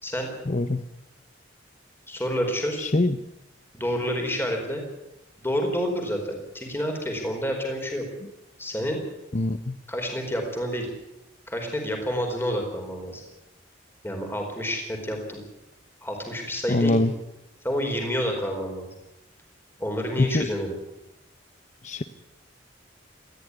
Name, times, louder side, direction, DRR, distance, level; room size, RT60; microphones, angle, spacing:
voice 1, 0.5-0.8 2.8-3.2 9.3-9.8 16.7-17.1 20.2-20.5 21.8-22.0, left 2 dB, 40° left, 10 dB, 0.8 m, -23 dB
voice 2, 2.1-2.9 3.7-4.8 5.4-8.0 8.6-9.0 9.9-10.9 11.5-13.2 14.0-15.4 16.0-17.0 17.6-18.9 19.8-20.7, equal, 10° left, 3 dB, 4.5 m, -29 dB
20.0 x 14.5 x 9.8 m, 0.93 s
head